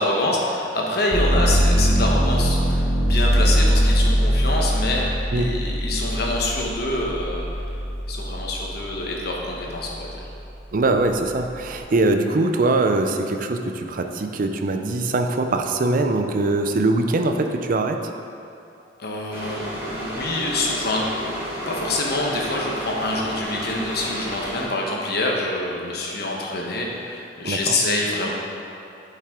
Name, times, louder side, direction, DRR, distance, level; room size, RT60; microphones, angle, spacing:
voice 1, 0.0-7.5 8.1-10.2 19.0-21.4 21.7-28.3, left 2 dB, 60° left, -2 dB, 1.1 m, -26 dB
sound 1, 1.1-8.9 9.4-10.2, equal, 35° left, 1.0 m, -21 dB
voice 2, 10.7-18.0 27.4-27.7, right 2 dB, 45° right, 5 dB, 0.5 m, -22 dB
sound 2, 19.3-24.6, equal, 15° right, 1.4 m, -32 dB
8.3 x 5.6 x 3.6 m, 2.7 s
head